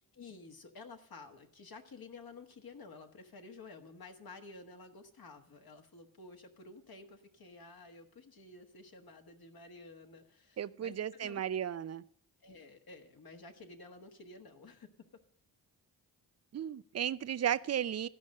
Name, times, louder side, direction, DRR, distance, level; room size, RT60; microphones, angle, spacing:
voice 1, 0.1-11.4 12.4-14.9, left 3 dB, 50° left, 1.5 m, -52 dB
voice 2, 10.6-12.0 16.5-18.1, right 10 dB, 35° right, 0.5 m, -34 dB
13.5 x 5.3 x 6.4 m
supercardioid pair, 50°, 46 cm